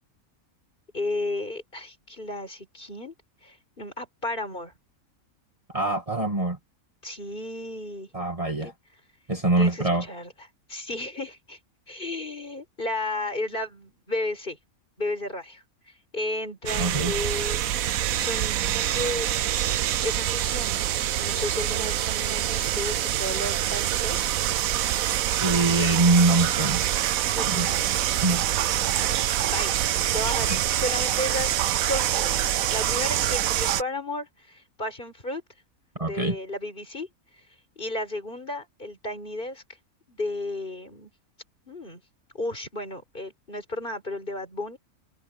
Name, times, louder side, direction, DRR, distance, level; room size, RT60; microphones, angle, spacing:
voice 1, 0.9-3.1 3.4-4.7 7.0-8.1 8.6-8.7 9.6-10.3 10.7-11.6 11.9-14.6 15.0-15.6 16.1-17.7 18.1-19.3 20.0-24.3 27.3-27.9 29.5-35.4 36.0-37.1 37.8-39.6 40.1-41.1 41.7-42.0 42.3-44.8, left 1 dB, 35° left, 4.6 m, -33 dB
voice 2, 5.7-6.6 8.1-8.7 9.3-10.1 16.8-17.1 25.4-26.9 27.5-27.7 28.2-28.4 30.5-30.6 36.0-36.4, right 2 dB, 25° right, 2.4 m, -23 dB
sound 1, 16.7-33.8, right 12 dB, 75° right, 1.1 m, -25 dB
omnidirectional pair, 1.5 m